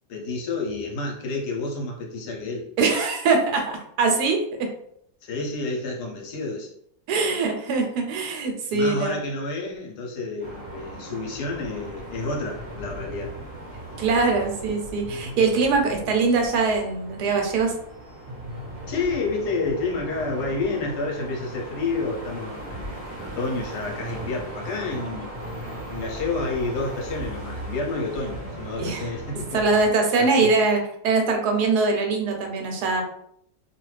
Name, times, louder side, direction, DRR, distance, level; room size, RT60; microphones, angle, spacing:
voice 1, 0.1-2.7 5.2-6.7 8.7-13.3 18.9-25.3 25.9-29.6 30.2-30.5, left 3 dB, 80° left, 0 dB, 1.3 m, -29 dB
voice 2, 2.8-4.7 7.1-9.2 14.0-17.7 28.8-29.1 29.5-33.0, right 4 dB, 75° right, 3 dB, 1.2 m, -22 dB
sound 1, 10.4-29.9, right 1 dB, 25° right, 0.9 m, -38 dB
2.7 x 2.4 x 3.2 m, 0.70 s
omnidirectional pair, 1.7 m